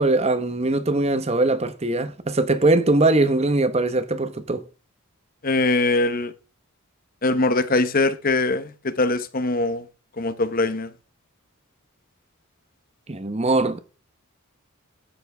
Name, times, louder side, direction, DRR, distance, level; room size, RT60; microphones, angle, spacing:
voice 1, 0.0-4.6 13.1-13.8, right 2 dB, 30° right, 0.9 m, -21 dB
voice 2, 5.4-6.3 7.2-9.8 10.2-10.9, left 2 dB, 40° left, 1.0 m, -22 dB
13.0 x 9.2 x 3.4 m
head